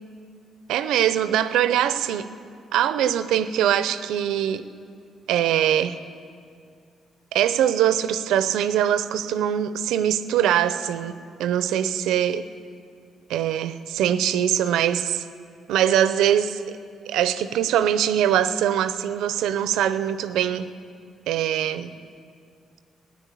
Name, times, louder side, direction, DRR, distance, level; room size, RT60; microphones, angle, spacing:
voice 1, 0.7-2.3 2.7-4.6 5.3-6.0 7.3-12.5 13.3-15.2 15.7-16.8 17.1-20.7 21.3-21.9, right 10 dB, 90° right, 13 dB, 0.6 m, -22 dB
15.0 x 9.9 x 8.3 m, 2.3 s
cardioid pair, 90°, 0 cm